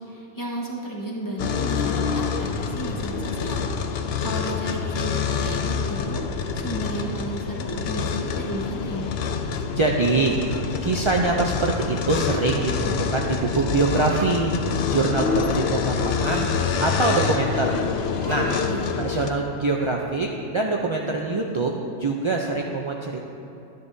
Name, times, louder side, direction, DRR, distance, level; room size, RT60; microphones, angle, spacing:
voice 1, 0.0-3.6 4.2-9.1 18.4-19.0, right 1 dB, 15° left, -3 dB, 1.2 m, -33 dB
sound 1, 1.4-19.3, left 6 dB, 60° left, 0.7 m, -26 dB
voice 2, 9.8-14.6 14.9-16.5 16.8-17.8 18.3-18.6 19.0-21.7 22.0-23.2, right 3 dB, 45° right, -1 dB, 0.3 m, -24 dB
sound 2, 12.0-12.6 13.6-14.3 15.2-16.6 17.0-17.3 17.6-18.6, right 3 dB, 85° right, 1.6 m, -40 dB
12.0 x 10.0 x 2.7 m, 2.9 s
omnidirectional pair, 1.3 m